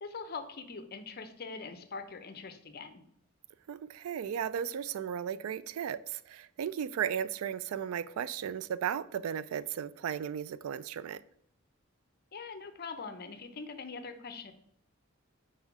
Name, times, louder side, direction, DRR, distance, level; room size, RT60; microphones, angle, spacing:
voice 1, 0.0-3.0 12.3-14.5, left 4 dB, 45° left, 0.6 m, -43 dB
voice 2, 3.7-11.2, right 8 dB, 85° right, 0.3 m, -35 dB
5.4 x 4.4 x 4.7 m
head